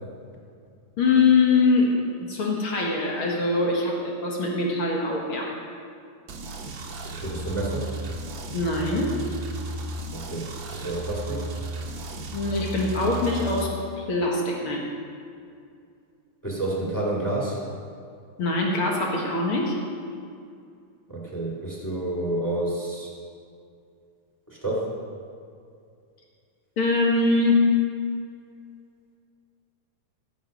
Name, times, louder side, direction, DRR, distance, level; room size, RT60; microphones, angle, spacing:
voice 1, 1.0-5.5 8.5-9.2 12.3-14.8 18.4-19.8 26.8-27.7, left 3 dB, 50° left, -1 dB, 1.9 m, -23 dB
sound 1, 6.3-13.7, right 2 dB, 85° right, 1.0 m, -34 dB
voice 2, 7.2-7.9 10.1-11.4 16.4-17.6 21.1-23.1 24.5-24.9, right 2 dB, 10° left, -4 dB, 1.3 m, -29 dB
15.5 x 8.0 x 5.2 m, 2.4 s
omnidirectional pair, 3.9 m